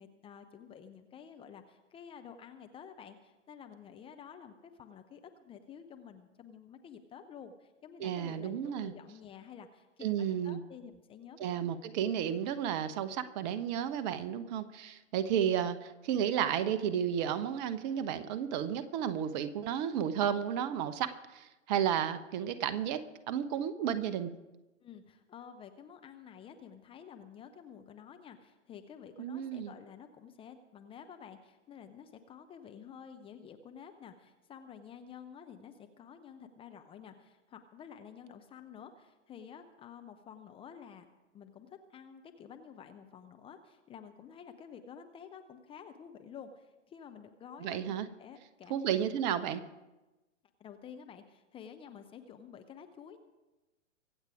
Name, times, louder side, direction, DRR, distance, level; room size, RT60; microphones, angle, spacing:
voice 1, 0.0-11.7 24.8-41.1 41.3-48.8 50.6-53.2, left 7 dB, 15° left, 7 dB, 0.7 m, -51 dB
voice 2, 8.0-8.9 10.0-10.6 11.4-24.3 29.2-29.7 47.6-48.1 48.7-49.6, right 9 dB, 35° right, 13 dB, 0.9 m, -32 dB
24.0 x 8.2 x 4.9 m, 1.1 s
figure-of-eight pair, 115°, 37 cm